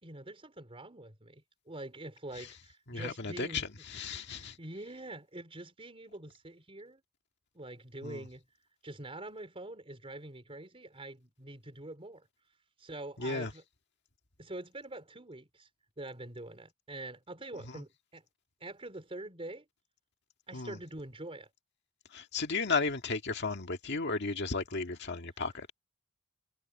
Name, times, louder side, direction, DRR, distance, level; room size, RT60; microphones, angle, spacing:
voice 1, 0.0-3.9 4.3-7.0 7.5-8.4 8.8-12.3 12.8-13.6 14.4-15.7 16.0-18.2 18.6-19.6 20.5-21.5, right 2 dB, 30° right, 4.4 m, -45 dB
voice 2, 2.9-4.6 8.0-8.2 13.2-13.5 20.5-20.8 22.1-25.7, left 4 dB, 55° left, 1.8 m, -34 dB
head